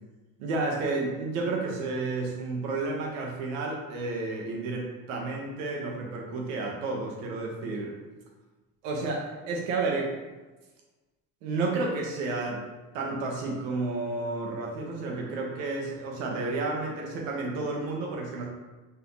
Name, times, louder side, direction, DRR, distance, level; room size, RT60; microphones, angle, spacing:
voice 1, 0.4-7.9 8.8-10.1 11.4-12.6 12.9-18.5, right 3 dB, 90° right, 0 dB, 1.0 m, -31 dB
4.1 x 2.8 x 3.9 m, 1.2 s
supercardioid pair, 75°, 38 cm